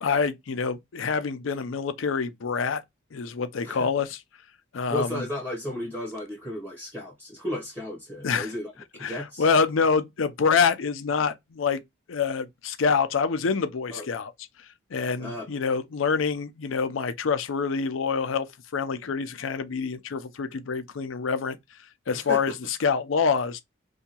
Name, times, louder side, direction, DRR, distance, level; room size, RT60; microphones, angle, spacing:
voice 1, 0.0-2.8 3.1-4.2 4.7-5.2 8.2-8.5 9.0-11.8 12.1-14.3 14.9-18.5 18.7-21.6 22.1-23.6, left 5 dB, 90° left, 0.5 m, -26 dB
voice 2, 4.9-9.4 13.9-14.0 15.2-15.5 22.1-22.5, left 1 dB, 10° right, 0.9 m, -34 dB
2.7 x 2.2 x 2.9 m
head